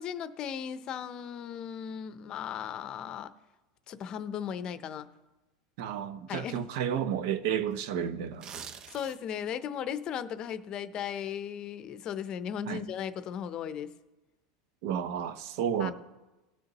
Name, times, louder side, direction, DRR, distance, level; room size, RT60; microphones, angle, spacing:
voice 1, 0.0-3.3 3.9-5.1 6.3-7.0 8.9-13.9 15.8-15.9, left 8 dB, 35° left, 0.6 m, -36 dB
voice 2, 5.8-8.5 12.7-12.8 14.8-15.9, right 9 dB, 65° right, 0.8 m, -31 dB
sound 1, 8.3-9.4 9.8-10.0, right 7 dB, 30° right, 0.7 m, -44 dB
19.0 x 6.6 x 3.0 m
supercardioid pair, 135°, 2 cm